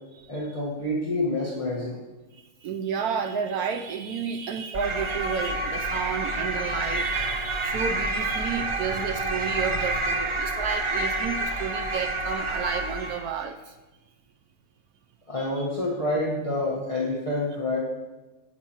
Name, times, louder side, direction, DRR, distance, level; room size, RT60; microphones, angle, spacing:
voice 1, 0.3-2.0 15.3-17.8, left 1 dB, 25° left, -6 dB, 1.3 m, -28 dB
voice 2, 2.3-13.8 15.4-15.7, right 6 dB, 75° right, 5 dB, 1.1 m, -31 dB
sound 1, 4.7-13.3, right 2 dB, 50° right, 0.3 m, -28 dB
17.0 x 6.0 x 3.0 m, 1.2 s
omnidirectional pair, 1.6 m